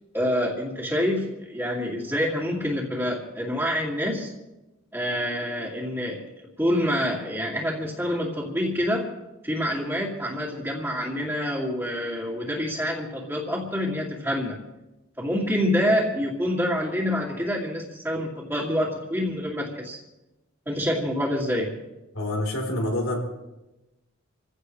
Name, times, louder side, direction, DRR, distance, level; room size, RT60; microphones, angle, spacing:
voice 1, 0.1-4.3 4.9-6.2 6.6-9.1 9.4-14.6 15.2-20.0 20.7-21.8, equal, 10° right, -6 dB, 2.4 m, -27 dB
voice 2, 22.1-23.2, left 1 dB, 90° left, 1 dB, 4.0 m, -27 dB
27.0 x 16.0 x 3.3 m, 1.0 s
head